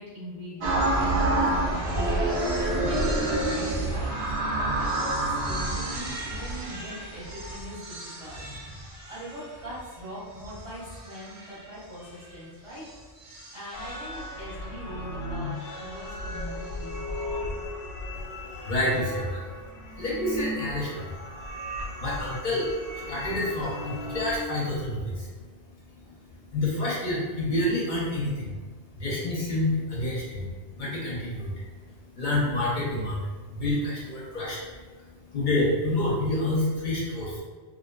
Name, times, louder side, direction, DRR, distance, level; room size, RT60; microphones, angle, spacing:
voice 1, 0.0-4.2 4.8-12.8 13.5-17.6 19.3-19.4, equal, 35° right, -12 dB, 0.7 m, -41 dB
sound 1, 0.6-9.8 10.4-11.6 12.9-13.0 13.2-14.2, right 2 dB, 65° right, 0.8 m, -28 dB
sound 2, 13.7-24.4, left 1 dB, 85° left, 0.9 m, -36 dB
voice 2, 18.6-19.4 20.0-21.1 22.0-25.3 26.5-28.6 29.0-31.7 32.1-34.6 35.3-37.4, left 1 dB, 55° left, -5 dB, 0.5 m, -28 dB
2.4 x 2.2 x 2.2 m, 1.4 s
omnidirectional pair, 1.2 m